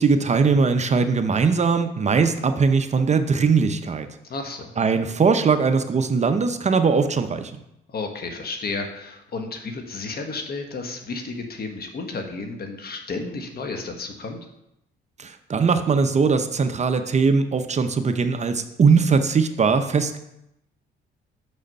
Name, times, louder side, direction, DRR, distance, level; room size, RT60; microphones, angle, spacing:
voice 1, 0.0-4.1 4.8-7.5 15.2-20.2, right 5 dB, 35° right, 8 dB, 0.7 m, -20 dB
voice 2, 4.3-4.7 7.9-14.4, left 3 dB, 50° left, 4 dB, 1.3 m, -32 dB
6.4 x 6.3 x 5.3 m, 0.83 s
cardioid pair, 90°, 20 cm